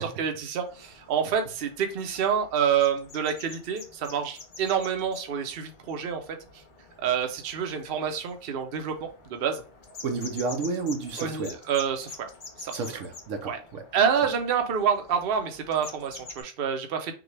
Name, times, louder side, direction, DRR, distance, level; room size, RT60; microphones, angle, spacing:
voice 1, 0.0-6.2 7.0-9.6 11.2-12.3 12.6-12.7 13.4-13.6 13.9-17.1, right 7 dB, 55° right, 0.8 m, -27 dB
sound 1, 0.6-16.4, left 3 dB, 45° left, 0.9 m, -47 dB
voice 2, 10.0-11.5 12.7-13.8, right 4 dB, 85° right, 1.1 m, -31 dB
6.0 x 2.3 x 3.2 m
omnidirectional pair, 1.3 m